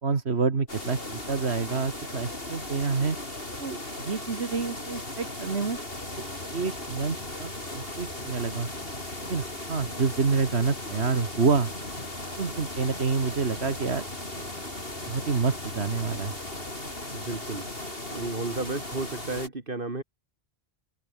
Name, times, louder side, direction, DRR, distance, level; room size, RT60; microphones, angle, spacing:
voice 1, 0.0-3.2 3.6-5.8 6.5-8.7 9.2-11.7 12.4-14.0 15.1-16.3, right 4 dB, 85° right, 2.1 m, -28 dB
sound 1, 0.7-19.5, left 1 dB, 65° left, 5.8 m, -37 dB
sound 2, 5.9-16.7, left 1 dB, 45° left, 7.5 m, -47 dB
voice 2, 17.1-17.7 18.1-20.0, right 3 dB, 55° right, 3.0 m, -33 dB
omnidirectional pair, 1.1 m